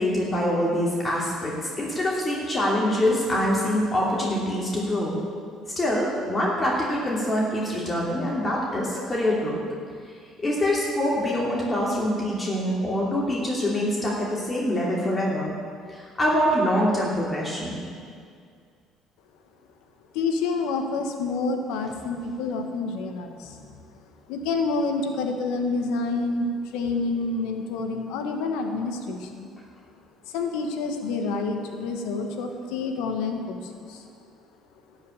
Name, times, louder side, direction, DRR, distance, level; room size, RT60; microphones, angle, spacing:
voice 1, 0.0-5.2 5.8-9.6 10.4-15.5 15.9-17.7 23.4-23.5, left 1 dB, 25° left, -5 dB, 2.8 m, -25 dB
voice 2, 20.1-23.6 24.3-29.5 30.2-34.0, left 3 dB, 85° left, 4 dB, 1.3 m, -28 dB
12.5 x 5.6 x 9.1 m, 2.2 s
supercardioid pair, 75°, 0 cm